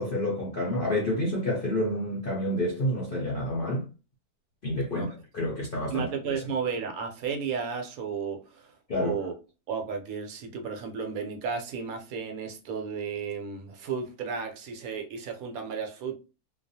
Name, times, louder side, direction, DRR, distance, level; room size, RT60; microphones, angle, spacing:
voice 1, 0.0-3.9 4.6-5.1 5.3-6.4 8.9-9.2, left 1 dB, 60° left, 0.5 m, -29 dB
voice 2, 5.9-8.7 9.0-9.3 9.7-16.1, right 6 dB, 75° right, 1.0 m, -33 dB
2.4 x 2.3 x 2.6 m
omnidirectional pair, 1.6 m